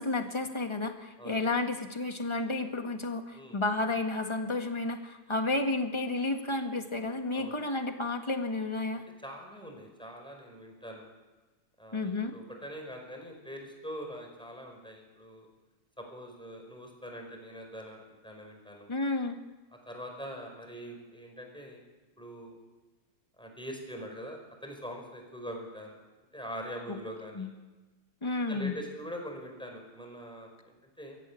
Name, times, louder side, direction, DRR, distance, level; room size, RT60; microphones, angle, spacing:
voice 1, 0.0-9.0 11.9-12.4 18.9-19.4 26.9-27.0 27.3-27.5 28.2-28.8, left 2 dB, 20° left, 5 dB, 1.7 m, -31 dB
voice 2, 9.2-11.1 11.8-15.5 16.0-18.9 19.9-21.8 22.2-22.6 23.4-26.0 26.3-27.5 28.5-31.2, equal, 5° left, 2 dB, 5.0 m, -43 dB
23.5 x 14.5 x 8.6 m, 1.2 s
omnidirectional pair, 1.7 m